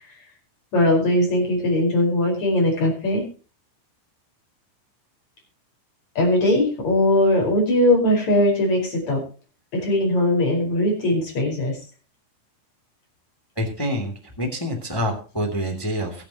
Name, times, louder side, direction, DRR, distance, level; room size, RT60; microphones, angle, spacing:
voice 1, 0.7-3.2 6.2-9.2 9.7-11.8, left 1 dB, 50° left, 0 dB, 6.1 m, -20 dB
voice 2, 13.6-16.2, equal, 10° left, 3 dB, 2.0 m, -27 dB
22.0 x 9.0 x 2.9 m, 0.36 s
omnidirectional pair, 4.2 m